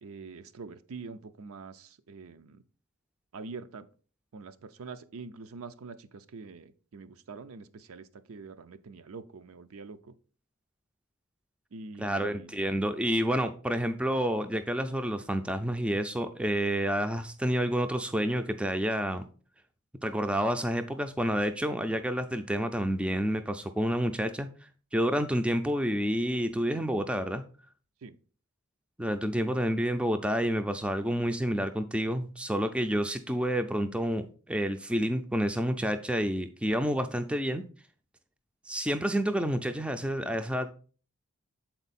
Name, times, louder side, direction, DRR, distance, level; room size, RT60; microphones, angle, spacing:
voice 1, 0.0-2.6 3.3-3.9 4.3-10.1 11.7-12.5 28.0-28.2, right 4 dB, 75° right, 0.5 m, -45 dB
voice 2, 12.0-19.2 20.0-24.5 24.9-27.4 29.0-37.6 38.7-40.7, equal, 5° right, 0.4 m, -29 dB
7.1 x 4.5 x 4.1 m
head